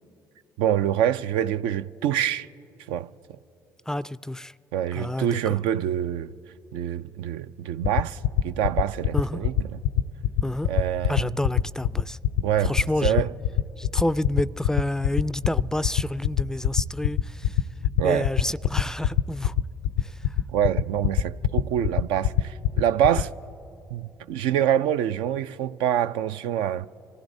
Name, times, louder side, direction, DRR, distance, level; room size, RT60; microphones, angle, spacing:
voice 1, 0.6-2.5 2.9-3.1 4.7-6.3 6.7-8.2 8.4-9.8 10.7-11.3 12.4-13.3 18.0-18.3 20.5-23.3 23.9-26.9, right 10 dB, 75° right, 0.4 m, -25 dB
voice 2, 3.9-4.5 4.9-5.6 9.1-9.4 10.4-10.7 11.1-12.2 12.6-13.3 13.8-17.6 18.0-19.5 20.0-20.4 23.0-23.2, left 1 dB, 5° left, 0.3 m, -29 dB
sound 1, 7.8-23.2, left 11 dB, 80° left, 0.4 m, -21 dB
26.5 x 15.5 x 2.6 m
hypercardioid pair, 55°, 9 cm